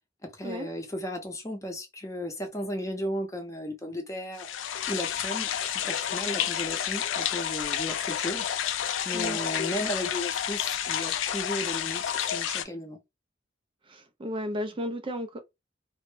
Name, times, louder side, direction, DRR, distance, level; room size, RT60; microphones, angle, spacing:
voice 1, 0.2-4.5 4.9-13.0, left 1 dB, 15° left, 0.6 m, -35 dB
sound 1, 4.4-12.6, left 10 dB, 80° left, 0.4 m, -30 dB
voice 2, 13.8-15.4, equal, 25° right, 0.4 m, -34 dB
2.1 x 2.0 x 3.1 m
head